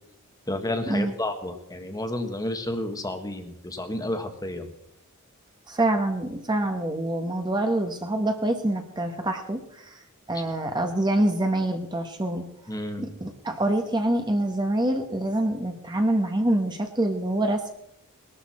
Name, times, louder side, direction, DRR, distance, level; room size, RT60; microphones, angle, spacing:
voice 1, 0.5-4.7 10.3-10.4 12.7-13.1, left 1 dB, 15° left, 5 dB, 1.5 m, -31 dB
voice 2, 5.7-10.0 10.3-12.5 13.0-17.7, right 1 dB, 20° right, 5 dB, 1.2 m, -26 dB
20.0 x 12.5 x 4.3 m, 0.75 s
head